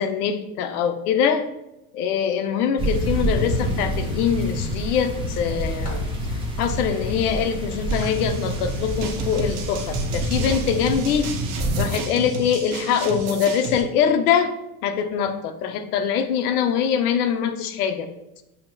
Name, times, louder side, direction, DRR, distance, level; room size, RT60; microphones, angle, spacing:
voice 1, 0.0-1.4 1.9-6.0 6.3-11.3 11.8-14.5 14.8-18.1, left 7 dB, 80° left, 8 dB, 0.6 m, -23 dB
sound 1, 2.8-11.8, equal, 10° right, 0.8 m, -27 dB
sound 2, 5.8-6.2 7.5-9.0 9.4-9.7 10.6-10.8 11.1-11.3, left 1 dB, 20° left, 1.5 m, -42 dB
sound 3, 7.9-13.8, right 4 dB, 45° right, 0.7 m, -32 dB
5.5 x 2.9 x 2.2 m, 0.91 s
supercardioid pair, 120°, 45 cm